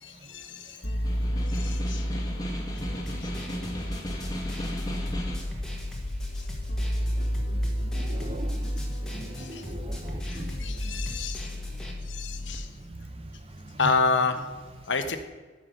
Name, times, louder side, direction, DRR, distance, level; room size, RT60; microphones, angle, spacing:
voice 1, 0.0-1.0 1.5-2.1 9.4-9.6 10.3-11.5 12.1-12.7 13.8-14.4 14.9-15.2, left 4 dB, 80° left, 9 dB, 1.1 m, -29 dB
sound 1, 0.8-12.6, equal, 55° left, 1.3 m, -32 dB
Snare drum, 0.9-5.5, equal, 20° left, 1.6 m, -36 dB
sound 2, 2.8-11.9, equal, 5° left, 1.6 m, -38 dB
voice 2, 7.9-8.8 9.1-10.5, right 1 dB, 30° right, 9 dB, 0.8 m, -40 dB
14.0 x 5.9 x 6.5 m, 1.3 s
head